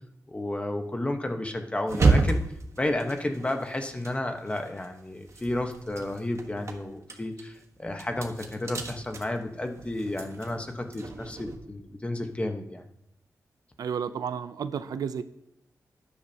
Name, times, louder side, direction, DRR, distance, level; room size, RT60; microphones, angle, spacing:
voice 1, 0.3-2.4 2.8-12.8, left 1 dB, 20° left, 5 dB, 1.2 m, -32 dB
sound 1, 1.9-4.9 5.2-11.6, right 3 dB, 50° right, 1.3 m, -30 dB
voice 2, 13.8-15.2, right 7 dB, 85° right, 12 dB, 0.5 m, -32 dB
12.5 x 10.5 x 2.9 m, 0.78 s
wide cardioid pair, 90°, 6 cm